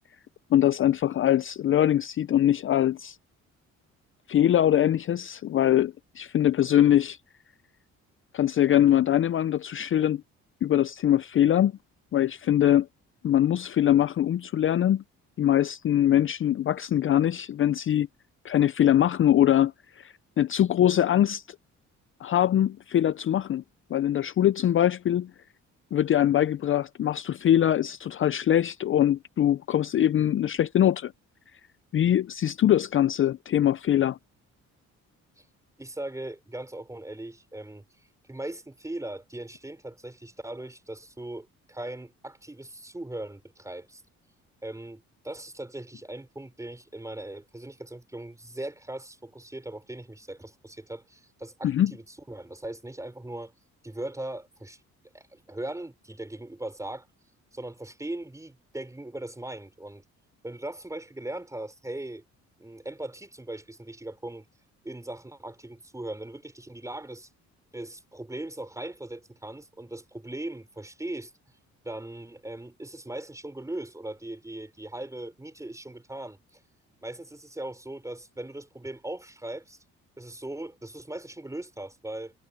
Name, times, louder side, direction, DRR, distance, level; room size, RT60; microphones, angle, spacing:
voice 1, 0.5-3.2 4.3-7.2 8.3-10.2 10.6-11.7 12.1-12.9 13.2-15.0 15.4-18.1 18.4-21.4 22.2-23.6 23.9-25.3 25.9-31.1 31.9-34.2 51.6-51.9, left 11 dB, 45° left, 0.5 m, -23 dB
voice 2, 35.8-37.8 38.3-44.0 44.6-53.5 53.8-54.8 55.1-57.1 57.5-60.0 60.4-62.2 62.6-64.5 64.8-67.3 67.7-71.3 71.8-76.4 77.0-79.8 80.2-82.3, right 1 dB, 10° right, 5.1 m, -39 dB
cardioid pair, 90°, 30 cm